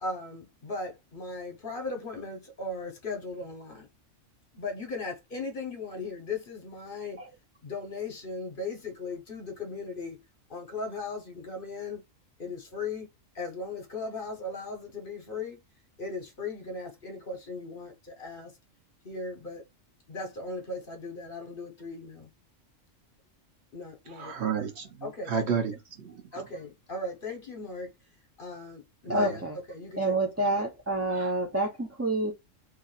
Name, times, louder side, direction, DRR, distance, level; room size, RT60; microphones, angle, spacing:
voice 1, 0.0-3.9 4.5-7.2 7.6-10.2 10.5-12.0 12.4-13.1 13.3-15.6 16.0-18.5 19.0-19.6 20.1-22.3 23.7-24.7 25.0-25.3 26.3-27.9 28.4-30.5, left 3 dB, 45° left, 1.1 m, -37 dB
voice 2, 24.1-26.4 29.1-29.4 31.1-31.3, right 6 dB, 60° right, 1.0 m, -33 dB
voice 3, 29.1-29.6 30.0-32.3, right 2 dB, 20° right, 0.4 m, -28 dB
2.8 x 2.4 x 4.0 m
omnidirectional pair, 1.3 m